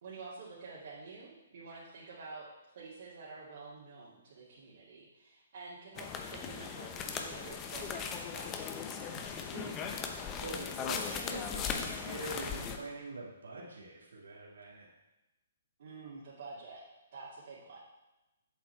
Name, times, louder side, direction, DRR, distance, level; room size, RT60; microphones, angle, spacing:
voice 1, 0.0-2.5 2.7-8.7 15.8-16.8 17.1-17.8, right 4 dB, 60° right, -7 dB, 2.3 m, -49 dB
sound 1, 5.9-12.8, left 6 dB, 25° left, 0.9 m, -38 dB
voice 2, 9.0-9.9 10.3-14.9, right 2 dB, 80° right, -3 dB, 2.0 m, -45 dB
7.8 x 7.4 x 4.5 m, 1.0 s
hypercardioid pair, 135°, 0 cm